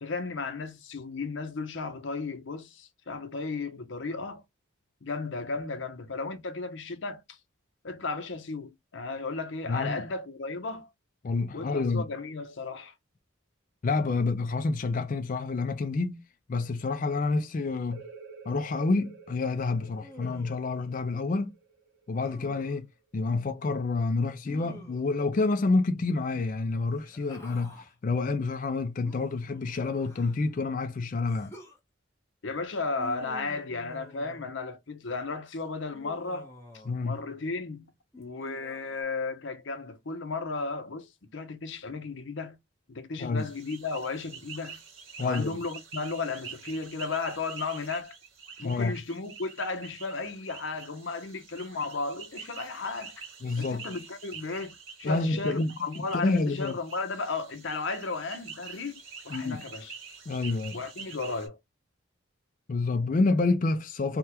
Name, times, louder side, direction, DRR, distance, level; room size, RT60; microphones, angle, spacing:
voice 1, 0.0-4.4 5.0-7.4 7.8-10.9 11.5-12.9 32.4-36.5 37.0-37.9 38.2-42.6 42.9-44.8 45.2-48.2 48.6-53.2 53.6-59.9 60.7-61.6, left 3 dB, 65° left, 0.7 m, -34 dB
voice 2, 9.7-10.0 11.2-12.1 13.8-16.2 16.5-18.0 18.5-21.5 22.1-22.9 23.1-31.5 36.9-37.2 43.2-43.5 45.2-45.6 48.6-48.9 53.4-53.9 55.0-56.8 59.3-59.6 60.3-60.8 62.7-64.2, left 3 dB, 40° left, 0.3 m, -28 dB
sound 1, 17.9-23.3, right 5 dB, 60° right, 0.7 m, -51 dB
Human voice, 20.0-20.8 22.2-22.9 24.4-25.2 26.8-27.9 29.0-30.5 31.3-31.8 33.0-34.5 35.9-37.1 38.1-39.0, left 2 dB, 15° left, 0.8 m, -49 dB
sound 2, 43.4-61.5, right 6 dB, 80° right, 1.0 m, -46 dB
3.5 x 2.2 x 2.9 m
head